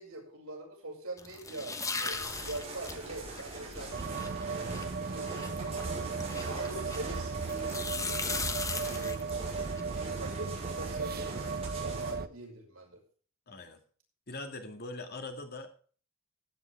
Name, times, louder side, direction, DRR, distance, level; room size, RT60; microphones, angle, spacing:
voice 1, 0.0-5.8 6.4-8.2 8.7-13.0, right 2 dB, 75° right, 0 dB, 5.7 m, -44 dB
sound 1, 1.2-7.2 7.5-9.8, left 4 dB, 15° left, 1.1 m, -38 dB
sound 2, 2.1-12.1, right 2 dB, 30° right, 6.4 m, -44 dB
sound 3, 3.9-12.3, right 4 dB, 45° right, 0.7 m, -36 dB
voice 2, 13.5-13.8 14.3-15.7, left 2 dB, 45° left, 5 dB, 2.3 m, -42 dB
15.5 x 9.1 x 3.5 m, 0.43 s
head